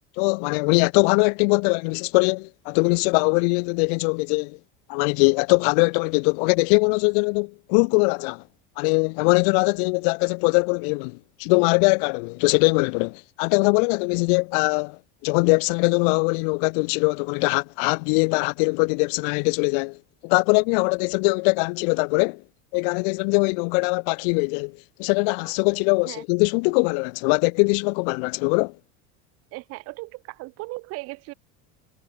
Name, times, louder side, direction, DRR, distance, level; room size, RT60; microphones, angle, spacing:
voice 1, 0.2-4.6 4.9-8.4 8.8-20.0 20.2-22.4 22.7-28.7, left 38 dB, 60° left, 0.5 m, -22 dB
voice 2, 29.5-31.3, right 23 dB, 50° right, 2.7 m, -37 dB
cardioid pair, 170°, 31 cm